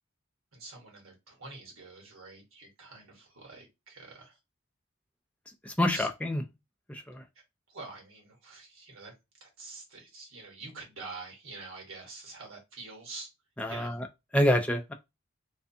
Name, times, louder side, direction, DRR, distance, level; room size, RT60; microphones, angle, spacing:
voice 1, 0.5-4.4 5.9-6.1 7.7-9.1 9.4-13.3 13.7-14.0, right 3 dB, 90° right, 1.1 m, -46 dB
voice 2, 5.6-6.4 6.9-7.2 13.6-14.1 14.3-14.9, left 1 dB, 5° left, 0.3 m, -27 dB
2.4 x 2.3 x 2.6 m
head